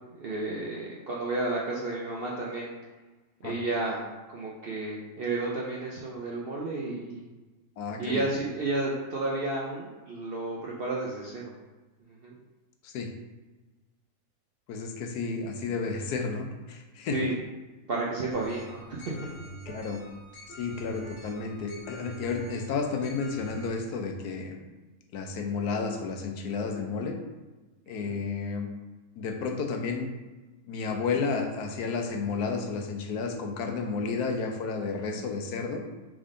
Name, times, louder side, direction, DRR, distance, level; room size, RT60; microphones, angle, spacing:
voice 1, 0.1-2.7 3.4-4.0 4.3-7.2 8.0-11.5 12.2-12.3 17.1-17.4 17.9-19.1 28.0-28.1, right 2 dB, 60° right, -4 dB, 0.6 m, -32 dB
voice 2, 7.8-8.2 12.8-13.1 14.7-17.2 19.7-20.0 20.6-24.6 25.1-27.2 27.9-28.7 29.2-30.1 30.7-35.8, left 4 dB, 90° left, 4 dB, 1.2 m, -32 dB
sound 1, 18.3-23.7, right 2 dB, 50° left, 1.1 m, -45 dB
3.6 x 3.5 x 3.7 m, 1.2 s
omnidirectional pair, 1.6 m